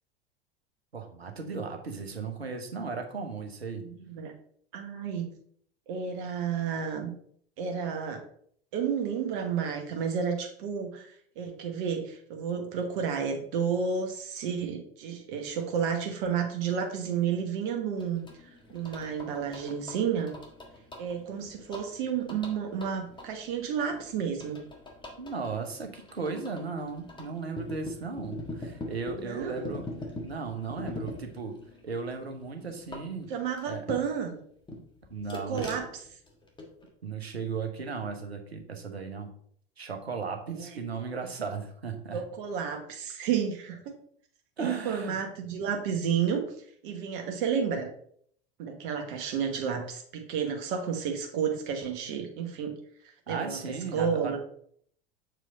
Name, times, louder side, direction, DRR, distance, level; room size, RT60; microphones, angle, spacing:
voice 1, 0.9-3.8 25.2-29.9 30.2-31.6 31.8-33.3 33.6-33.8 35.1-35.8 37.0-39.3 39.8-42.2 44.6-45.2 53.3-54.4, right 5 dB, 85° right, 4 dB, 1.1 m, -36 dB
voice 2, 3.9-4.3 4.7-5.3 5.9-7.1 7.6-8.2 8.7-20.3 21.0-24.6 29.2-29.8 33.3-34.4 35.3-36.0 40.5-40.8 42.1-43.9 44.6-46.4 46.8-47.9 48.6-52.7 53.0-54.4, right 7 dB, 55° right, 4 dB, 1.2 m, -31 dB
sound 1, 18.0-34.3 34.7-36.9, left 1 dB, 15° left, 1.6 m, -43 dB
6.6 x 4.8 x 3.9 m, 0.62 s
figure-of-eight pair, 75°, 31 cm